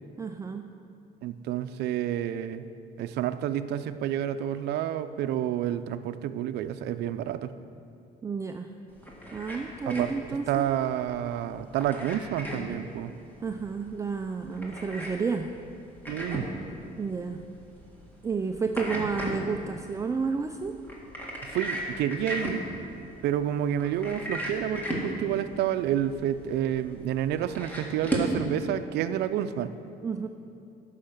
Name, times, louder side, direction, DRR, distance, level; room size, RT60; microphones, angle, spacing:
voice 1, 0.2-0.7 8.2-8.7 9.3-10.7 13.4-15.5 17.0-17.4 18.2-20.8 30.0-30.3, right 5 dB, 20° right, 5 dB, 0.4 m, -31 dB
voice 2, 1.2-2.6 3.0-7.5 9.9-10.1 10.5-13.1 16.1-16.5 21.4-22.7 23.2-29.7, right 10 dB, 75° right, 12 dB, 0.5 m, -29 dB
sound 1, 8.9-28.4, right 1 dB, 10° left, 1.9 m, -37 dB
12.0 x 5.7 x 6.6 m, 2.6 s
cardioid pair, 110°, 17 cm